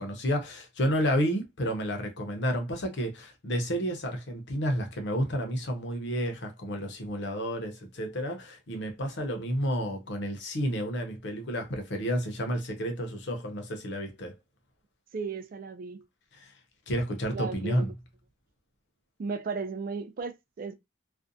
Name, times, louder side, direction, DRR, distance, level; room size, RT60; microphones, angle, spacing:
voice 1, 0.0-14.3 16.3-16.5 16.9-17.9, equal, 65° left, 0.7 m, -31 dB
voice 2, 15.1-16.0 17.3-17.9 19.2-20.7, right 4 dB, 50° right, 0.3 m, -35 dB
2.5 x 2.1 x 2.6 m
head